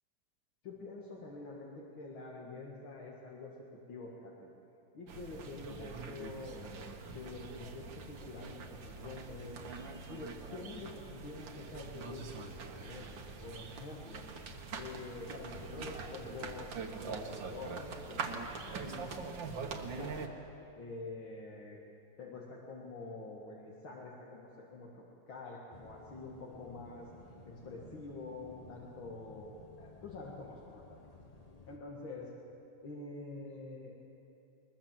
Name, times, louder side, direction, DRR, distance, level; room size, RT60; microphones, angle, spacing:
voice 1, 0.6-4.5 4.9-6.6 7.1-9.6 10.1-14.2 14.7-16.7 17.0-19.2 19.6-20.3 20.8-21.8 22.2-27.1 27.5-29.5 29.8-31.0 31.7-32.3 32.8-33.9, left 3 dB, 75° left, -3 dB, 2.7 m, -47 dB
sound 1, 5.1-20.3, right 4 dB, 70° right, 2.0 m, -44 dB
sound 2, 25.7-31.8, left 2 dB, 25° left, 0.9 m, -55 dB
21.0 x 21.0 x 7.6 m, 2.7 s
omnidirectional pair, 2.2 m